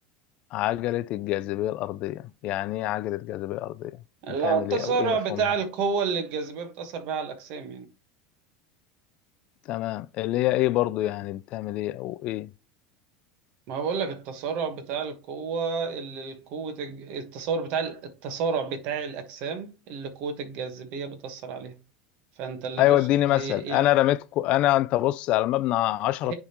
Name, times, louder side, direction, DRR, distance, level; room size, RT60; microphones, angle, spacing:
voice 1, 0.5-4.0 4.4-5.4 9.7-12.5 22.8-26.3, left 15 dB, 45° left, 0.3 m, -25 dB
voice 2, 4.2-7.9 13.7-21.7 22.4-23.0 23.3-23.9 26.2-26.3, right 5 dB, 55° right, 1.4 m, -30 dB
9.8 x 3.6 x 3.0 m
supercardioid pair, 140°, 3 cm